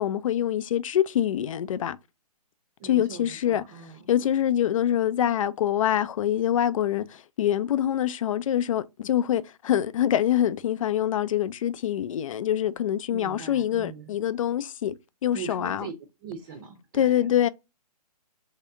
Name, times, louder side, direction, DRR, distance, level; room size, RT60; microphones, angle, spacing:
voice 1, 0.0-2.0 2.8-3.6 4.1-14.9 15.2-15.9 16.9-17.5, left 11 dB, 55° left, 0.4 m, -25 dB
voice 2, 2.8-4.1 13.1-14.1 15.3-16.0 16.2-17.3, right 6 dB, 30° right, 0.6 m, -41 dB
3.4 x 2.7 x 3.5 m
hypercardioid pair, 145°, 20 cm